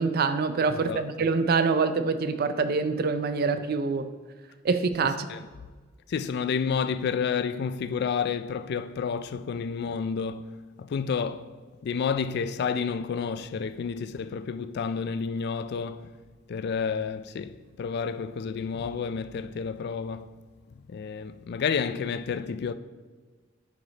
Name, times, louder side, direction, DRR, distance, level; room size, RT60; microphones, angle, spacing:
voice 1, 0.0-4.1 4.6-5.3, right 4 dB, 50° right, 0.5 m, -25 dB
voice 2, 0.7-1.0 5.0-5.5 6.1-10.5 10.8-11.5 11.8-16.1 16.5-20.3 20.9-22.7, left 6 dB, 55° left, 0.3 m, -30 dB
9.6 x 5.0 x 3.9 m
head